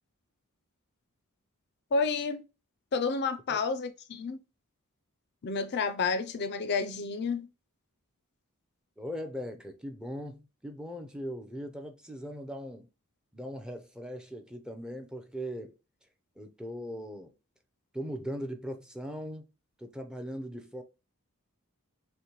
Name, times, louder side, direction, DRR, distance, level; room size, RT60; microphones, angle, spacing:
voice 1, 1.9-2.4 2.9-4.4 5.4-7.5, left 4 dB, 50° left, 0.5 m, -30 dB
voice 2, 9.0-12.9 13.3-15.7 16.4-17.3 17.9-19.5 19.8-20.8, equal, 5° right, 0.5 m, -39 dB
6.5 x 2.2 x 3.0 m
head